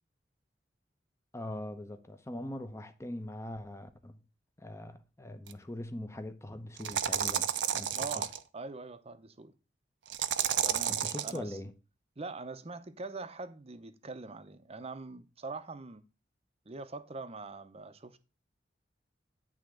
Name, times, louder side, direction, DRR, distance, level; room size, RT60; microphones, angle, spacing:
voice 1, 1.3-4.2 4.6-7.5 7.7-8.3 10.9-11.7, left 1 dB, 15° left, 0.9 m, -42 dB
sound 1, 5.5-5.6 6.8-8.4 10.1-11.4, right 9 dB, 75° right, 0.7 m, -31 dB
voice 2, 7.9-8.3 8.5-9.5 10.6-11.6 12.2-16.1 16.7-18.2, right 3 dB, 35° right, 0.7 m, -43 dB
10.5 x 3.6 x 6.4 m
head